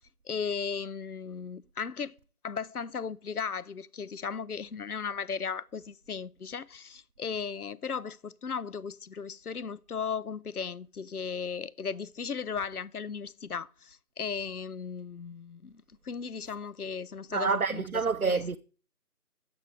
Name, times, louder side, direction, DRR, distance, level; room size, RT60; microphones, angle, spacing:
voice 1, 0.3-2.1 2.4-17.8 18.2-18.4, left 6 dB, 70° left, 0.7 m, -36 dB
voice 2, 17.3-18.6, right 5 dB, 65° right, 0.7 m, -28 dB
10.5 x 7.9 x 4.8 m
figure-of-eight pair, 175°, 46 cm